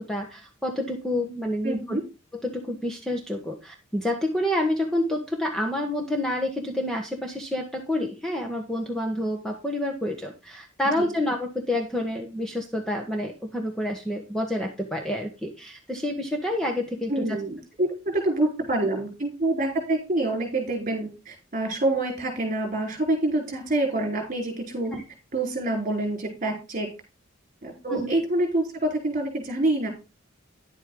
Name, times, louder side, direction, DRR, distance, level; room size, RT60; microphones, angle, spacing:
voice 1, 0.0-2.0 2.3-17.4 24.9-25.0 27.9-28.1, left 1 dB, 5° left, 1 dB, 1.2 m, -28 dB
voice 2, 1.6-2.0 11.0-11.1 17.1-24.9 25.3-26.9 27.6-29.9, right 2 dB, 40° right, 4 dB, 4.0 m, -26 dB
10.5 x 8.1 x 3.7 m, 0.28 s
head